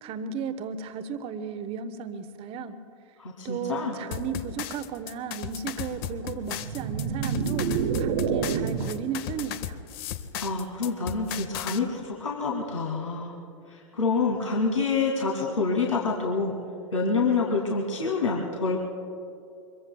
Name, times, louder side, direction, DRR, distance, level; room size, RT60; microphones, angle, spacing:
voice 1, 0.0-2.8 3.4-7.7 8.0-9.8, right 6 dB, 35° right, 11 dB, 1.0 m, -34 dB
voice 2, 3.2-3.9 10.4-13.3 13.7-16.5 16.9-18.8, left 4 dB, 75° left, -2 dB, 2.1 m, -27 dB
sound 1, 4.1-11.8, left 10 dB, 45° left, 0.8 m, -36 dB
sound 2, 6.6-9.1, right 7 dB, 60° right, 1.0 m, -28 dB
25.5 x 22.0 x 2.3 m, 2.5 s
figure-of-eight pair, 90°, 17 cm